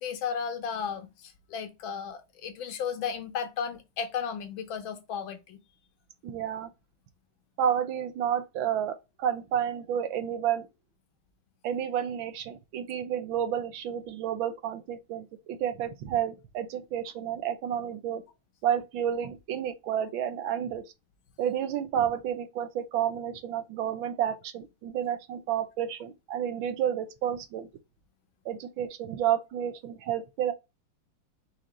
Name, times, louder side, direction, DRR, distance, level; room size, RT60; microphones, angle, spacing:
voice 1, 0.0-5.6, left 7 dB, 75° left, 1.6 m, -34 dB
voice 2, 6.2-6.7 7.6-10.7 11.6-18.2 18.6-20.9 21.4-27.7 28.4-30.5, right 9 dB, 80° right, 1.4 m, -30 dB
5.0 x 2.6 x 4.1 m
omnidirectional pair, 2.2 m